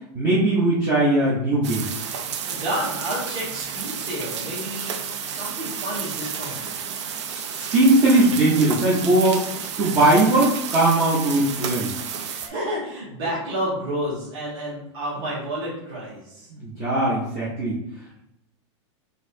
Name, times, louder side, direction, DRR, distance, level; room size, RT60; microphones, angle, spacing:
voice 1, 0.1-1.9 7.5-9.5 9.8-11.9 16.5-17.7, right 2 dB, 20° right, -7 dB, 0.5 m, -19 dB
sound 1, 1.6-12.5, right 7 dB, 75° right, 0.5 m, -31 dB
voice 2, 2.5-4.9 5.2-6.9 12.3-16.5, right 1 dB, 35° right, -11 dB, 1.4 m, -30 dB
3.9 x 2.6 x 2.5 m, 0.84 s
supercardioid pair, 180°, 15 cm